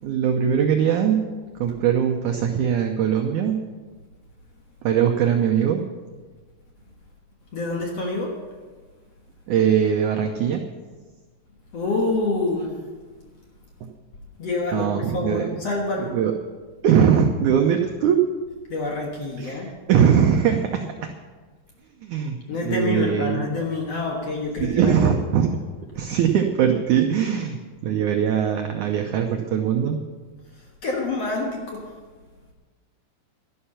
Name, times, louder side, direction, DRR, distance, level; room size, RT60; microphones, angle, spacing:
voice 1, 0.0-1.2 1.5-3.6 4.8-5.8 9.5-10.6 14.7-15.5 16.0-16.3 16.8-18.2 19.4-20.9 22.0-22.4 22.6-23.4 24.6-25.5 25.9-30.0, right 8 dB, 85° right, 4 dB, 1.7 m, -21 dB
voice 2, 7.5-8.4 11.7-12.7 14.4-16.2 18.7-19.7 22.5-25.2 30.5-31.9, left 2 dB, 55° left, 0 dB, 1.9 m, -27 dB
12.5 x 11.5 x 5.7 m, 1.4 s
omnidirectional pair, 4.6 m